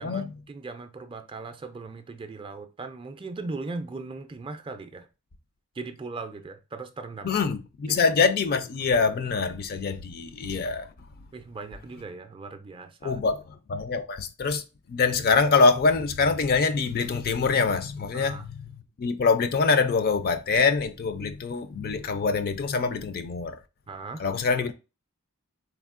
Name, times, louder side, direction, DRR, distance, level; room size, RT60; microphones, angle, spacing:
voice 1, 0.0-5.1 5.7-7.5 7.9-8.0 11.3-13.2 18.1-18.5 23.9-24.3, right 3 dB, 25° right, 0.4 m, -39 dB
voice 2, 7.2-10.9 13.0-13.4 13.7-14.6 14.9-18.5 19.0-23.6 24.2-24.7, left 4 dB, 45° left, 0.4 m, -24 dB
3.9 x 3.5 x 2.4 m
head